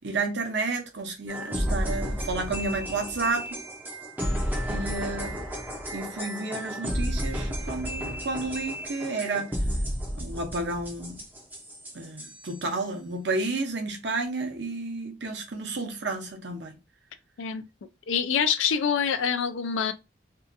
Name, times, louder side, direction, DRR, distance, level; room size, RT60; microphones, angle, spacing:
voice 1, 0.0-3.6 4.7-5.4 5.9-9.5 10.2-11.2 11.9-16.8, right 3 dB, 65° right, 0.7 m, -31 dB
sound 1, 1.3-12.6, equal, 10° right, 0.5 m, -32 dB
voice 2, 18.1-19.9, left 7 dB, 85° left, 0.4 m, -25 dB
2.7 x 2.3 x 2.5 m
head